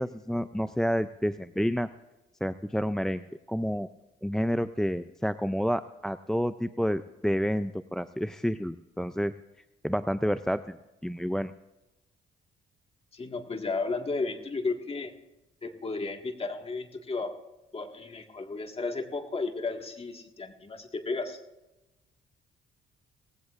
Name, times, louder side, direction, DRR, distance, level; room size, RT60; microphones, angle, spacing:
voice 1, 0.0-1.9 2.4-3.2 3.5-3.9 4.2-9.3 9.8-10.8 11.0-11.5, equal, 5° left, 12 dB, 0.4 m, -29 dB
voice 2, 13.1-15.1 15.6-17.3 17.7-21.4, left 3 dB, 30° left, 4 dB, 1.8 m, -33 dB
18.5 x 16.5 x 2.5 m, 1.0 s
cardioid pair, 90°, 20 cm